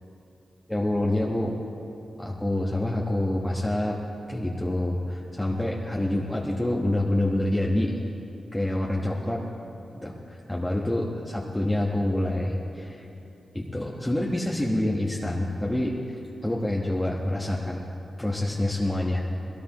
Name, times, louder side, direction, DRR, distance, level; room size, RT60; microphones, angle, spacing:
voice 1, 0.7-1.6 2.2-4.0 4.3-8.0 8.5-9.4 9.9-13.0 13.5-16.2 16.4-17.8 18.2-19.2, left 1 dB, 10° left, -3 dB, 1.2 m, -27 dB
20.5 x 17.5 x 3.0 m, 2.9 s
cardioid pair, 80°, 0 cm